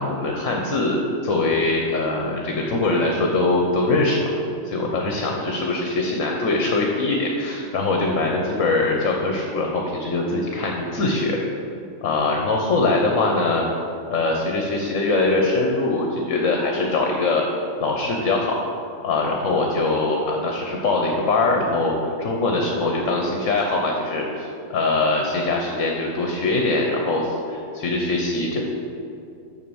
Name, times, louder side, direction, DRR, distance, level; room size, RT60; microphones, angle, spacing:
voice 1, 0.0-4.3 4.6-11.4 12.0-13.6 14.1-17.4 17.8-18.6 19.0-28.6, left 2 dB, 65° left, 1 dB, 1.3 m, -22 dB
7.3 x 5.9 x 7.0 m, 2.5 s
omnidirectional pair, 1.4 m